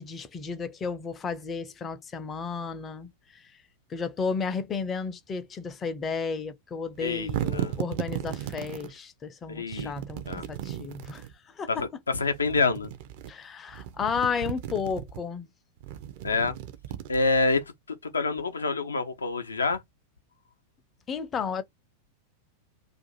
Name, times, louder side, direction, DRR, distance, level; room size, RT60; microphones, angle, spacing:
voice 1, 0.0-3.4 3.9-11.8 13.3-15.5 21.1-21.6, left 5 dB, 20° left, 0.5 m, -33 dB
voice 2, 7.0-7.7 9.5-9.9 10.3-10.4 11.7-12.9 16.2-16.6 17.1-19.8, left 3 dB, 75° left, 0.5 m, -27 dB
sound 1, 7.0-8.9 9.7-11.3 12.3-13.3 13.7-15.2 15.8-17.6, right 11 dB, 50° right, 0.5 m, -35 dB
2.5 x 2.5 x 3.9 m
figure-of-eight pair, 90°, 0 cm